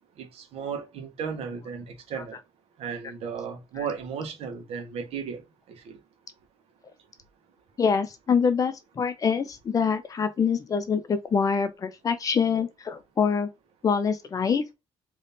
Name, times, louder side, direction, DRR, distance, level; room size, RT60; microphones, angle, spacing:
voice 1, 0.2-2.4 2.8-5.4 5.7-6.0, right 6 dB, 75° right, 1.3 m, -35 dB
voice 2, 7.8-13.5 13.8-14.6, left 6 dB, 35° left, 0.8 m, -25 dB
3.5 x 3.1 x 4.1 m
cardioid pair, 135°, 11 cm